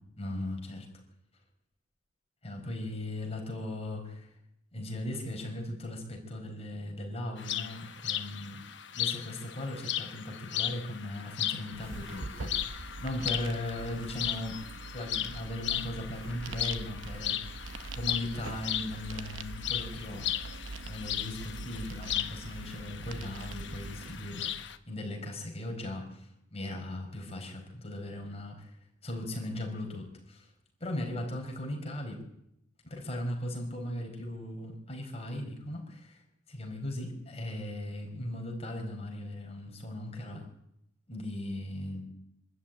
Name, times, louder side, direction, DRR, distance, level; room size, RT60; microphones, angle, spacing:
voice 1, 0.2-0.9 2.4-4.3 4.7-8.6 8.9-14.6 14.9-28.8 29.0-30.5 30.8-32.2 32.8-36.2 36.5-40.4 41.1-42.0, left 1 dB, 30° left, 1 dB, 4.7 m, -38 dB
sound 1, 7.4-24.8, left 11 dB, 65° left, 1.1 m, -37 dB
sound 2, 11.7-24.2, right 3 dB, 85° right, 0.9 m, -43 dB
sound 3, 12.3-24.7, right 1 dB, 55° right, 7.6 m, -57 dB
25.0 x 13.0 x 8.9 m, 0.80 s
head